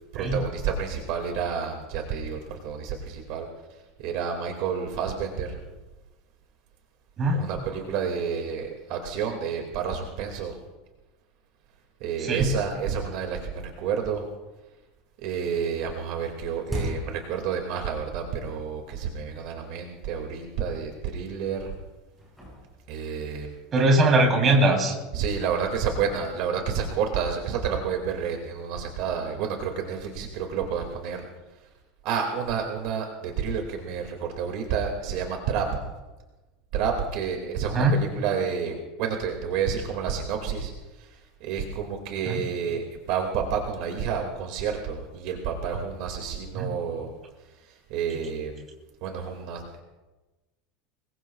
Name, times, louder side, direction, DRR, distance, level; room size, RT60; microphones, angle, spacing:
voice 1, 0.1-3.5 4.0-5.6 7.3-10.5 12.0-14.3 15.2-21.7 22.9-23.6 25.1-31.3 32.0-35.7 36.7-40.7 41.0-47.1 47.6-48.6 49.0-49.8, right 7 dB, 50° right, 3 dB, 2.1 m, -30 dB
voice 2, 12.2-12.5 23.7-25.0 37.7-37.9 42.2-42.4 46.5-46.7, right 2 dB, 20° right, 1 dB, 3.3 m, -21 dB
sound 1, 14.4-15.0 15.2-18.1 18.4-18.6 19.3-19.4 19.9-20.0 20.3-20.5 21.2-21.7 22.1-24.7 25.2-29.1, equal, ahead, 7.2 m, -41 dB
25.0 x 21.5 x 2.4 m, 1.1 s
supercardioid pair, 175°, 0 cm